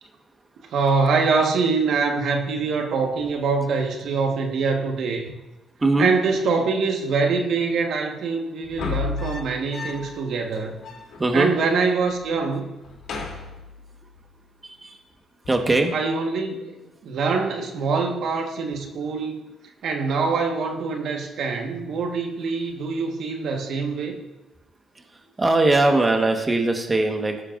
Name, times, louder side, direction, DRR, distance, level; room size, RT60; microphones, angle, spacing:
voice 1, 0.7-5.3 6.0-10.7 11.3-12.8 15.9-16.8 17.0-19.4 19.8-24.2, right 4 dB, 70° right, 2 dB, 1.4 m, -24 dB
voice 2, 5.8-6.1 11.2-11.5 14.6-15.0 15.5-15.9 24.9-25.0 25.4-27.4, right 2 dB, 20° right, 3 dB, 1.3 m, -20 dB
sound 1, 8.6-10.2 10.5-10.6 10.8-11.8 12.1-12.5 12.8-14.2 15.4-15.8, left 4 dB, 70° left, 2.9 m, -33 dB
16.5 x 9.9 x 2.6 m, 1.0 s
cardioid pair, 90°, 0 cm